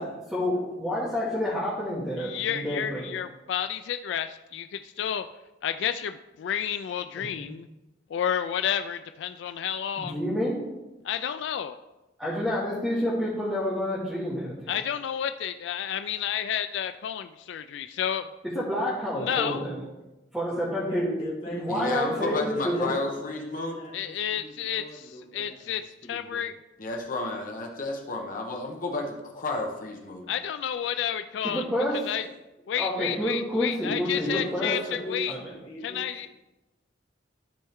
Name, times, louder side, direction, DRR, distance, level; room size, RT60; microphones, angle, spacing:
voice 1, 0.3-3.2 7.2-7.5 10.0-10.6 12.2-14.8 18.4-19.9 20.3-21.2 21.6-22.9 31.4-32.0 32.7-34.8 35.3-35.6, equal, 5° right, -10 dB, 2.0 m, -29 dB
voice 2, 2.2-5.2 5.6-7.7 8.1-10.2 11.0-11.8 14.7-18.3 19.2-19.7 23.9-25.0 25.3-25.8 26.1-26.5 30.3-31.6 32.1-32.2 32.7-34.8 35.1-35.3 35.8-36.3, left 9 dB, 70° left, 10 dB, 0.3 m, -30 dB
voice 3, 20.9-21.8 22.1-26.4 34.1-36.3, equal, 30° left, -5 dB, 1.9 m, -40 dB
voice 4, 21.7-23.8 26.8-30.3, left 2 dB, 45° left, 1 dB, 1.1 m, -32 dB
13.0 x 4.4 x 3.6 m, 1.0 s
head